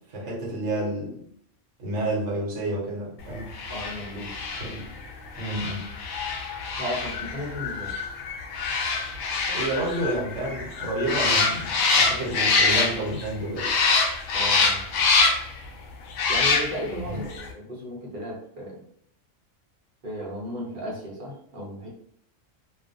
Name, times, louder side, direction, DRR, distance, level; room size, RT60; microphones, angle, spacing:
voice 1, 0.1-1.2 1.8-3.5 4.5-4.8 5.4-5.9 9.5-13.7 17.1-17.2, right 1 dB, 65° right, -2 dB, 1.0 m, -30 dB
sound 1, 3.5-13.3 13.6-15.6 16.1-17.0 17.3-17.4, left 4 dB, 80° left, 0.9 m, -25 dB
voice 2, 3.7-4.3 6.8-7.9 14.3-14.9 16.3-18.8 20.0-21.9, equal, 45° right, -4 dB, 0.8 m, -34 dB
2.4 x 2.3 x 2.6 m, 0.65 s
omnidirectional pair, 1.3 m